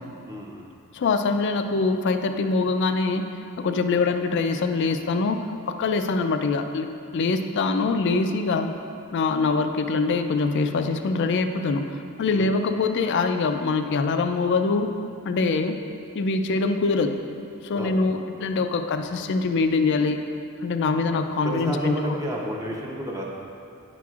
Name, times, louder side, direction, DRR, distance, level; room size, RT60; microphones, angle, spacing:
voice 1, 0.3-0.7 7.8-7.9 12.3-12.5 17.7-18.0 20.9-21.1 21.4-23.2, right 1 dB, 15° right, -3 dB, 0.6 m, -31 dB
voice 2, 0.9-3.3 3.6-6.9 7.1-8.7 9.1-14.9 15.3-15.8 16.1-17.1 17.6-20.2 20.6-21.9, left 4 dB, 50° left, 7 dB, 0.3 m, -24 dB
9.5 x 5.9 x 2.4 m, 2.6 s
head